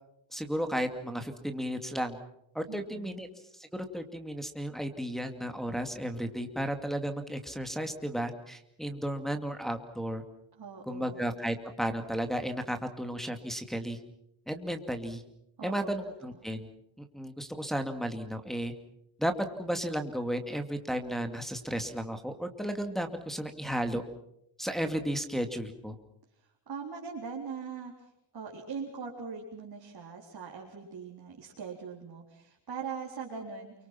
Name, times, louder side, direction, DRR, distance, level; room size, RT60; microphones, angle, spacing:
voice 1, 0.3-2.2 2.5-3.3 3.5-10.2 10.9-14.0 14.5-15.2 15.6-16.7 17.0-18.7 19.2-19.3 19.6-24.0 24.6-26.0, equal, ahead, 5 dB, 2.4 m, -34 dB
voice 2, 2.7-3.2 10.6-11.3 15.6-16.0 26.7-28.1 28.3-33.7, right 6 dB, 55° right, -2 dB, 4.2 m, -41 dB
29.0 x 24.5 x 6.0 m, 0.78 s
wide cardioid pair, 125°, 46 cm